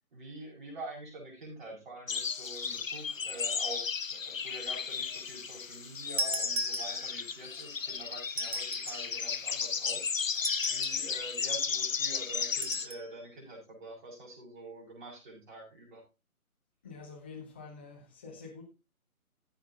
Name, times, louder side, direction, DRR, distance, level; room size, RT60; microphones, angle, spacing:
voice 1, 0.1-10.1 10.7-16.0, right 2 dB, 35° right, 5.5 m, -46 dB
sound 1, 2.1-12.9, left 6 dB, 60° left, 0.9 m, -34 dB
sound 2, 6.2-7.3 8.3-9.1 10.3-11.1 12.6-13.1, right 2 dB, 60° right, 1.2 m, -36 dB
voice 2, 16.8-18.6, left 4 dB, 10° left, 0.9 m, -47 dB
14.0 x 5.9 x 3.9 m
figure-of-eight pair, 150°, 44 cm